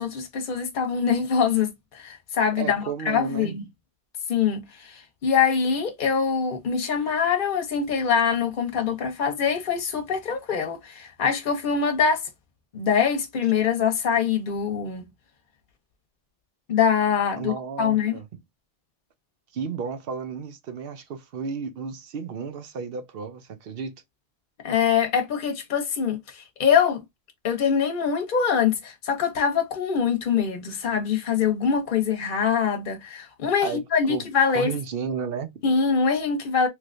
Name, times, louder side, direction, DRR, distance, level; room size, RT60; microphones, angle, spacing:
voice 1, 0.0-3.7 4.3-12.2 12.7-15.0 16.7-18.2 24.6-27.0 27.4-34.7 35.6-36.7, left 6 dB, 55° left, 0.9 m, -24 dB
voice 2, 2.6-3.5 17.4-18.2 19.5-24.0 33.6-34.2 34.5-35.5, right 6 dB, 70° right, 0.8 m, -33 dB
3.2 x 3.0 x 2.5 m
omnidirectional pair, 1.0 m